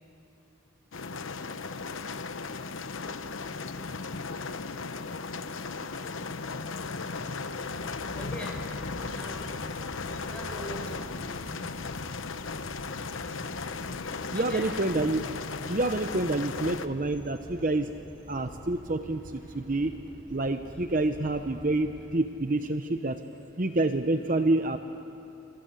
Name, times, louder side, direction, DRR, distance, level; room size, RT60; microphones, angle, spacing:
sound 1, 0.9-16.9, left 4 dB, 90° left, 1.0 m, -36 dB
sound 2, 3.9-15.8, equal, 25° left, 7.1 m, -52 dB
sound 3, 7.9-22.0, equal, 25° right, 7.7 m, -49 dB
voice 1, 8.1-8.6 9.1-9.5 10.3-11.3 14.3-14.7, equal, 5° left, 0 dB, 5.2 m, -42 dB
voice 2, 14.3-15.2 15.7-17.9 18.3-19.9 20.3-23.2 23.6-24.8, right 2 dB, 45° right, 8 dB, 0.8 m, -27 dB
28.0 x 25.5 x 8.1 m, 3.0 s
head